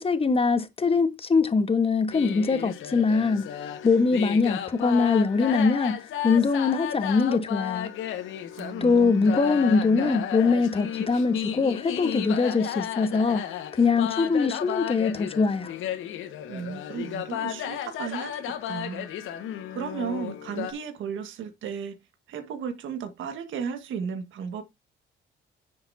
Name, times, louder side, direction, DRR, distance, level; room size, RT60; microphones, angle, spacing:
voice 1, 0.0-3.4 3.8-6.0 6.2-7.9 8.8-13.4 13.8-15.7, left 4 dB, 30° left, 1.3 m, -22 dB
sound 1, 2.1-20.7, left 10 dB, 85° left, 1.6 m, -34 dB
voice 2, 8.5-9.6 9.9-10.2 16.5-19.1 19.7-21.9 22.3-24.6, right 7 dB, 80° right, 1.8 m, -35 dB
10.0 x 7.0 x 2.8 m
cardioid pair, 90°, 20 cm